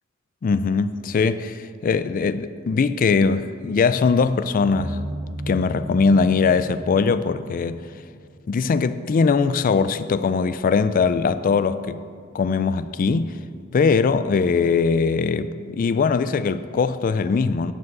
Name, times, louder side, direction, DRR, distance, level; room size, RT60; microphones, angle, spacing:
voice 1, 0.4-5.0 5.5-7.8 8.5-12.0 12.3-13.4 13.7-17.7, left 5 dB, 40° left, 0.3 m, -21 dB
sound 1, 4.7-8.5, right 1 dB, 35° right, 0.7 m, -34 dB
12.5 x 4.8 x 8.5 m
head